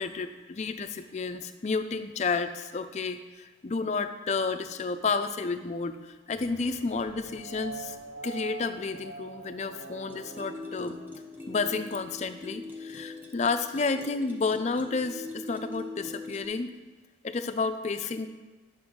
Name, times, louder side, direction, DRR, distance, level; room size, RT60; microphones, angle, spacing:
voice 1, 0.0-8.0 8.2-11.0 11.5-16.7 17.2-18.3, left 4 dB, 35° left, 10 dB, 0.4 m, -31 dB
sound 1, 6.3-11.9, right 3 dB, 70° right, 0.8 m, -44 dB
sound 2, 10.1-16.5, left 3 dB, 10° right, 0.7 m, -42 dB
9.5 x 6.0 x 3.7 m, 1.2 s
head